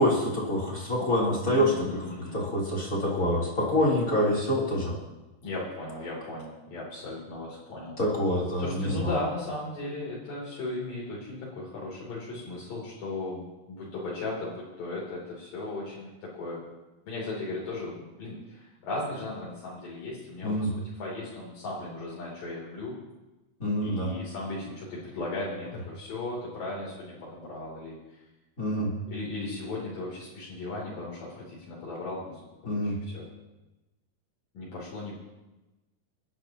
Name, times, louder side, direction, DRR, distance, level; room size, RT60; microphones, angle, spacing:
voice 1, 0.0-2.0 2.3-5.0 8.0-9.1 20.4-20.7 23.6-24.1 28.6-28.9 32.6-33.0, equal, 25° left, -4 dB, 3.5 m, -26 dB
voice 2, 1.5-2.4 5.4-8.0 8.6-16.6 17.1-23.0 23.8-28.0 29.1-33.3 34.5-35.1, left 2 dB, 70° left, -6 dB, 4.8 m, -36 dB
28.0 x 10.5 x 2.9 m, 1.0 s
omnidirectional pair, 4.1 m